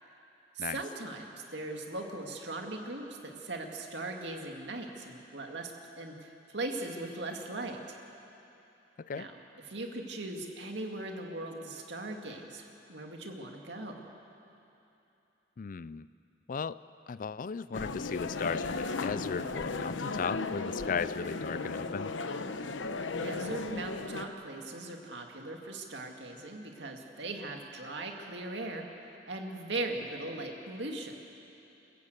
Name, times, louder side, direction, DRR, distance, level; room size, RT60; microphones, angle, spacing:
voice 1, 0.5-8.0 9.1-9.4 9.6-14.1 23.2-31.2, right 2 dB, 65° right, 2 dB, 2.3 m, -39 dB
voice 2, 15.6-16.1 16.5-16.8 17.1-22.1, left 6 dB, 45° left, 16 dB, 0.4 m, -36 dB
sound 1, 17.7-24.3, left 3 dB, 85° left, 0.9 m, -35 dB
28.5 x 14.5 x 8.2 m, 2.9 s
head